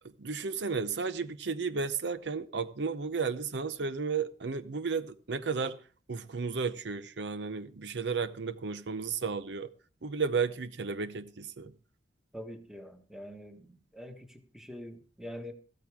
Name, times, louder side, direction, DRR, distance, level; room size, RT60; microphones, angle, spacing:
voice 1, 0.2-5.8 6.1-9.7 10.0-11.7, right 5 dB, 75° right, 0.7 m, -33 dB
voice 2, 12.3-15.5, equal, 5° right, 1.5 m, -45 dB
14.5 x 13.5 x 3.6 m
head